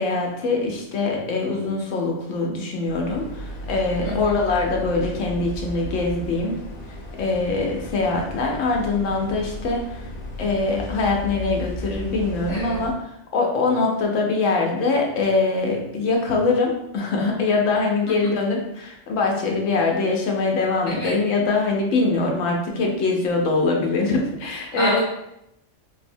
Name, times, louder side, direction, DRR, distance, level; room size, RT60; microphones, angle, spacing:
voice 1, 0.0-6.6 7.2-10.1 10.4-25.0, left 3 dB, 90° left, 0 dB, 1.0 m, -23 dB
sound 1, 2.8-12.9, left 1 dB, 60° left, 0.7 m, -35 dB
voice 2, 4.0-4.3 12.5-12.8 18.1-18.2 20.9-21.2 24.8-25.0, right 1 dB, 55° right, -7 dB, 0.3 m, -28 dB
4.0 x 2.0 x 2.6 m, 0.82 s
omnidirectional pair, 1.3 m